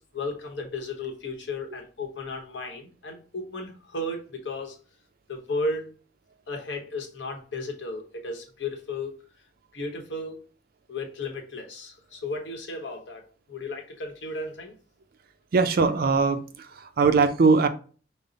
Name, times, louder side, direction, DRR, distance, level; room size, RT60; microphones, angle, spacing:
voice 1, 0.0-4.8 5.3-5.9 6.5-9.2 9.7-10.4 10.9-14.7, left 2 dB, 85° left, 1 dB, 1.0 m, -34 dB
voice 2, 15.5-17.7, right 4 dB, 55° right, 8 dB, 0.4 m, -21 dB
5.2 x 2.0 x 3.9 m, 0.39 s
head